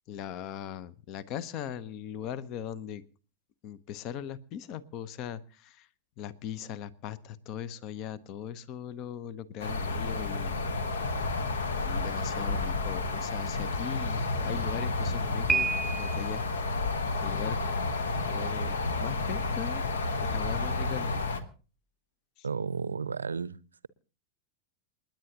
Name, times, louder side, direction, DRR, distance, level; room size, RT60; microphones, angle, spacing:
voice 1, 0.1-3.0 3.6-5.9 6.2-10.6 11.8-17.6 18.3-19.8 20.2-21.3 22.4-22.5, left 9 dB, 40° left, 0.8 m, -40 dB
sound 1, 9.6-21.4, left 3 dB, 65° left, 1.3 m, -31 dB
Piano, 15.5-16.4, right 3 dB, 5° right, 0.8 m, -29 dB
voice 2, 22.4-23.6, right 5 dB, 75° right, 0.6 m, -33 dB
28.0 x 10.5 x 2.8 m
figure-of-eight pair, 90°, 0 cm